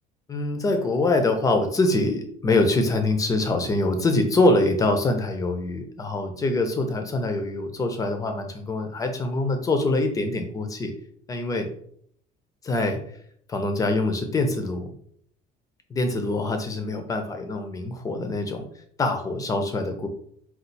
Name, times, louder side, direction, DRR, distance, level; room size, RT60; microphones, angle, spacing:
voice 1, 0.3-10.9 11.3-11.7 12.6-13.0 13.5-14.9 15.9-18.7 19.0-20.1, left 2 dB, 20° left, 6 dB, 0.6 m, -24 dB
4.4 x 2.4 x 4.0 m, 0.64 s
cardioid pair, 165°, 18 cm